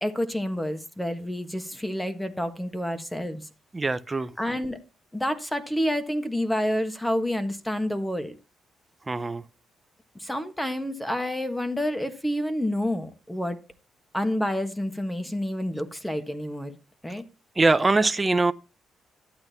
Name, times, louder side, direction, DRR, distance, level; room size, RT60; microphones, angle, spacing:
voice 1, 0.0-3.4 4.4-4.8 5.1-8.3 10.2-13.6 14.1-16.8 17.0-17.2, equal, 5° left, 1.4 m, -28 dB
voice 2, 3.7-4.3 9.1-9.4 17.6-18.5, right 3 dB, 20° right, 0.6 m, -22 dB
12.0 x 8.7 x 2.8 m
cardioid pair, 90°, 0 cm